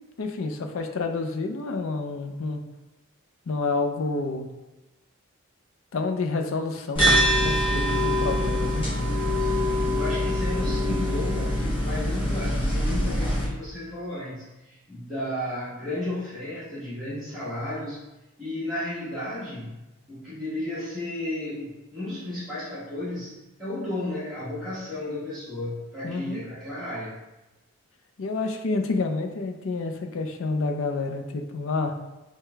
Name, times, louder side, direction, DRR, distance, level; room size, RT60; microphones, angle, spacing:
voice 1, 0.2-2.6 3.5-4.5 5.9-8.9 26.0-26.4 28.2-31.9, left 3 dB, 60° left, 5 dB, 0.4 m, -29 dB
sound 1, 7.0-13.5, equal, 25° left, 0.9 m, -24 dB
voice 2, 9.4-18.0 18.4-23.3 23.6-27.2, left 1 dB, ahead, -14 dB, 1.0 m, -33 dB
4.8 x 2.2 x 3.3 m, 1.0 s
head